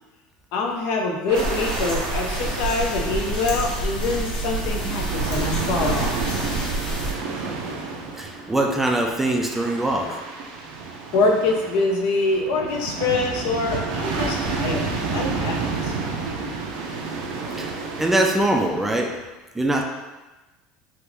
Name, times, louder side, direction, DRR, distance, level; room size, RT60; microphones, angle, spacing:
voice 1, 0.5-6.2 11.1-15.9, left 3 dB, 70° left, 1 dB, 0.6 m, -25 dB
sound 1, 1.3-7.1, right 1 dB, 30° left, 1.0 m, -28 dB
sound 2, 1.3-19.0, right 4 dB, 75° right, 0.5 m, -31 dB
voice 2, 8.2-10.2 17.6-17.7 18.0-19.2 19.5-19.8, right 1 dB, 10° right, 1 dB, 0.3 m, -22 dB
3.4 x 2.4 x 3.0 m, 1.1 s
supercardioid pair, 130°, 3 cm